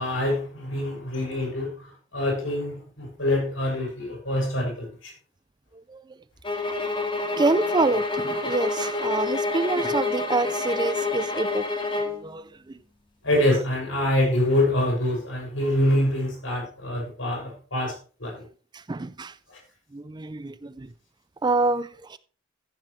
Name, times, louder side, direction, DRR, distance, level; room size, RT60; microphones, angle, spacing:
voice 1, 0.0-1.7 2.1-4.9 13.2-17.9 18.2-18.4, left 1 dB, 80° left, 5.8 m, -25 dB
sound 1, 6.4-12.2, left 3 dB, 25° left, 2.2 m, -28 dB
voice 2, 7.4-11.7 12.1-12.4 18.9-19.3 19.9-20.9 21.4-22.2, right 3 dB, 20° right, 0.4 m, -26 dB
14.0 x 7.5 x 3.2 m
head